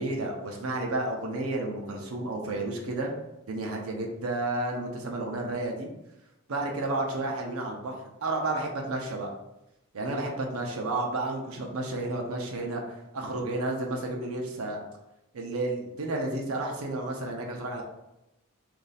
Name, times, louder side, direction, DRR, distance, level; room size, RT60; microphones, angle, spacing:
voice 1, 0.0-3.1 3.5-5.9 6.5-9.3 9.9-14.8 15.3-17.8, right 2 dB, 80° right, 0 dB, 0.6 m, -31 dB
3.1 x 2.6 x 4.0 m, 0.91 s
head